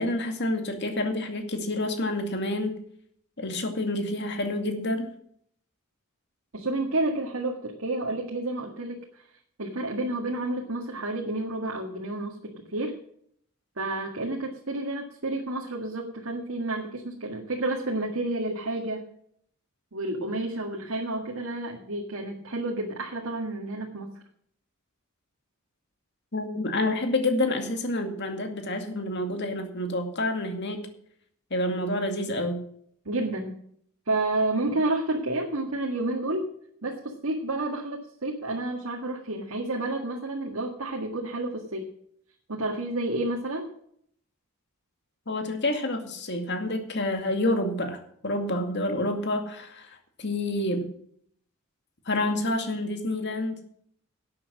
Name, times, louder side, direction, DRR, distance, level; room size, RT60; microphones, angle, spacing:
voice 1, 0.0-2.8 3.4-5.1 26.3-30.9 31.5-32.6 45.3-50.9 52.1-53.6, left 1 dB, 55° left, 5 dB, 2.2 m, -28 dB
voice 2, 6.5-9.2 9.6-13.0 13.8-19.0 19.9-24.2 33.1-33.6 34.1-36.5 36.8-41.9 42.5-43.7, right 2 dB, 90° right, 0 dB, 1.9 m, -30 dB
11.5 x 8.7 x 6.2 m, 0.65 s
head